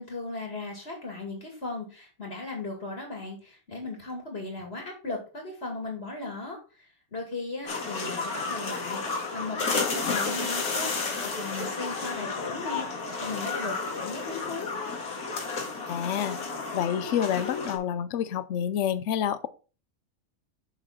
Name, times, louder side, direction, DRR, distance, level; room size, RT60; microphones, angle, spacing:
voice 1, 0.0-15.0, left 3 dB, 45° left, 2.8 m, -37 dB
sound 1, 7.7-17.8, left 4 dB, 85° left, 2.4 m, -32 dB
voice 2, 15.9-16.4 16.7-19.5, left 9 dB, 60° left, 0.9 m, -28 dB
7.3 x 6.7 x 4.0 m
omnidirectional pair, 1.5 m